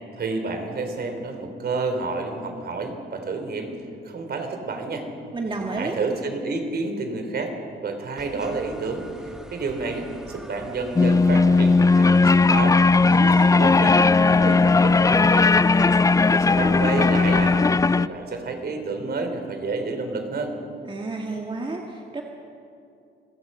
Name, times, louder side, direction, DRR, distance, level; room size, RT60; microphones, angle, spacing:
voice 1, 0.2-3.7 4.0-5.1 5.8-7.6 7.8-12.8 13.6-17.7 18.0-20.5, right 3 dB, 55° right, 5 dB, 3.6 m, -30 dB
voice 2, 5.3-6.0 13.1-13.8 20.8-22.2, right 3 dB, 25° right, 0 dB, 1.9 m, -31 dB
sound 1, 8.2-17.7, equal, 5° right, 1.6 m, -43 dB
sound 2, 11.0-18.1, left 3 dB, 15° left, 0.4 m, -17 dB
27.5 x 17.0 x 5.6 m, 2.7 s
cardioid pair, 90°, 20 cm